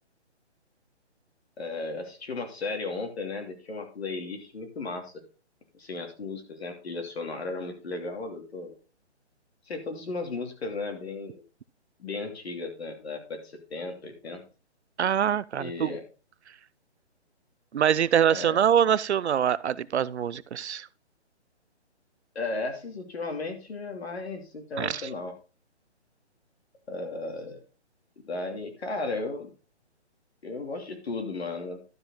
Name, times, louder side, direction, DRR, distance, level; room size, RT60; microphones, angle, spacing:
voice 1, 1.6-5.2 5.7-8.7 9.7-11.4 12.0-14.4 15.6-16.0 18.3-18.6 22.3-25.3 26.9-27.6 28.3-29.5 30.4-31.8, left 3 dB, 65° left, 3.0 m, -35 dB
voice 2, 15.0-15.9 17.7-20.9 24.8-25.1, right 9 dB, 70° right, 0.6 m, -24 dB
12.0 x 5.9 x 4.0 m
hypercardioid pair, 165°, 35 cm